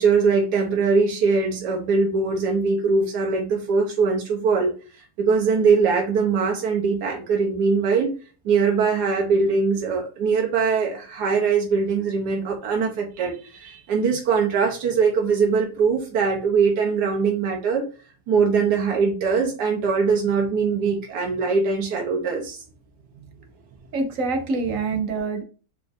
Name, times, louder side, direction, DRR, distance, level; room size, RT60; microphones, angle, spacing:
voice 1, 0.0-4.7 5.2-8.1 8.4-17.8 18.3-22.6 23.7-23.8, right 5 dB, 85° right, 1 dB, 1.5 m, -21 dB
voice 2, 23.9-25.4, right 3 dB, 60° right, 5 dB, 1.2 m, -25 dB
5.1 x 2.6 x 3.4 m, 0.35 s
omnidirectional pair, 1.7 m